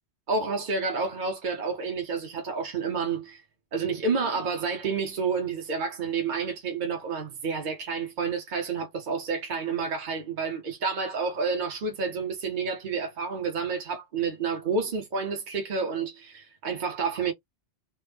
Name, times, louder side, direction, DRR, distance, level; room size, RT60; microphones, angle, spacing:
voice 1, 0.3-3.4 3.7-17.3, right 5 dB, 50° right, 0.9 m, -29 dB
3.0 x 2.1 x 3.4 m
omnidirectional pair, 1.1 m